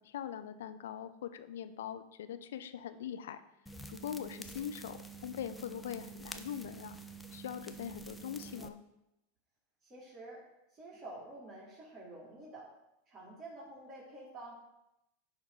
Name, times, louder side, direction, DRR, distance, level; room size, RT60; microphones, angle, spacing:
voice 1, 0.1-3.4 3.9-7.0 7.3-8.8, left 9 dB, 75° left, 11 dB, 0.6 m, -42 dB
sound 1, 3.7-8.7, right 3 dB, 5° left, 0.7 m, -48 dB
voice 2, 9.8-10.4 10.7-12.7 13.1-14.5, right 2 dB, 30° right, -5 dB, 2.8 m, -49 dB
10.5 x 3.6 x 5.4 m, 0.89 s
hypercardioid pair, 100°, 0 cm